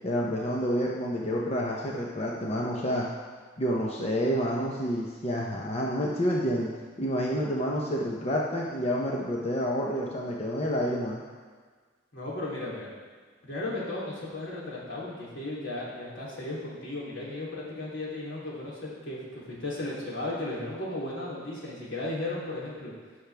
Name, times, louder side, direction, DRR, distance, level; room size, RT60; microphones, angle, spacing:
voice 1, 0.0-3.1 3.6-6.7 7.0-11.2, equal, 35° left, -3 dB, 0.9 m, -29 dB
voice 2, 12.1-12.9 13.4-22.9, left 2 dB, 75° left, -7 dB, 3.3 m, -35 dB
16.0 x 6.5 x 3.5 m, 1.5 s
head